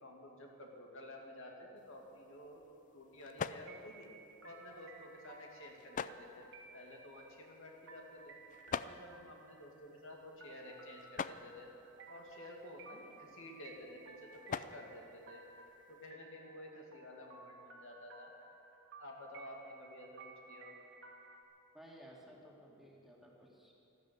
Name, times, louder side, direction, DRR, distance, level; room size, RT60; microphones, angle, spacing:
voice 1, 0.0-2.6 2.9-4.1 4.4-6.5 6.7-8.4 8.8-11.7 12.1-15.4 15.9-18.3 19.0-20.8, left 1 dB, 65° left, 1 dB, 2.3 m, -52 dB
sound 1, 1.8-16.1, left 6 dB, 35° left, 0.4 m, -48 dB
sound 2, 3.6-21.4, right 3 dB, 60° right, 2.1 m, -58 dB
voice 2, 21.7-23.7, equal, ahead, -3 dB, 2.3 m, -56 dB
13.5 x 13.0 x 8.2 m, 2.7 s
head